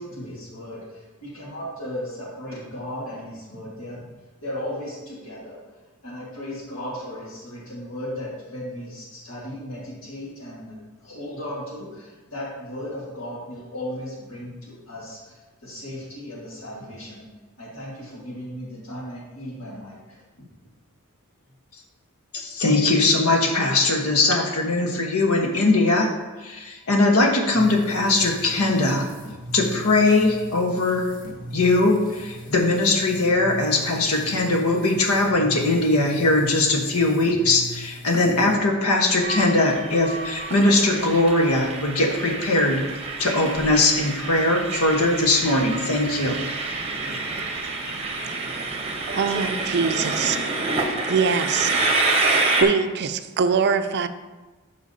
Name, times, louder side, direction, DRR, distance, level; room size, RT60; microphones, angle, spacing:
voice 1, 0.0-4.0 4.4-5.6 6.0-17.3 17.6-20.5, left 1 dB, 65° left, -6 dB, 1.8 m, -36 dB
voice 2, 22.3-26.1 26.4-29.1 29.5-31.1 31.5-42.8 43.2-46.4, left 2 dB, 80° left, 1 dB, 1.2 m, -20 dB
sound 1, 27.5-38.6, right 1 dB, 40° left, 1.2 m, -39 dB
Train, 39.2-52.6, right 3 dB, 30° right, 0.9 m, -27 dB
voice 3, 48.2-48.7 49.1-50.5 51.1-54.1, right 5 dB, 50° right, 10 dB, 0.4 m, -24 dB
12.0 x 5.0 x 2.8 m, 1.2 s
head